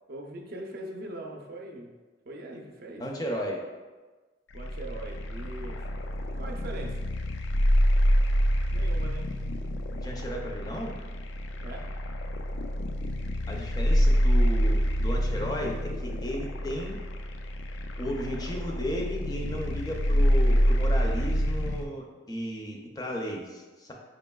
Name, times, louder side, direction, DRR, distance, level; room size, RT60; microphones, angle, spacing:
voice 1, 0.1-1.9 2.3-3.1 4.5-5.8 6.4-7.0 8.7-9.3 11.6-11.8, right 2 dB, 55° right, 1 dB, 0.5 m, -41 dB
voice 2, 3.0-3.6 10.0-11.0 13.5-17.0 18.0-23.9, equal, 20° left, 0 dB, 0.4 m, -34 dB
sound 1, 4.5-21.9, equal, 85° left, 0.3 m, -27 dB
5.4 x 2.8 x 2.3 m, 1.3 s
head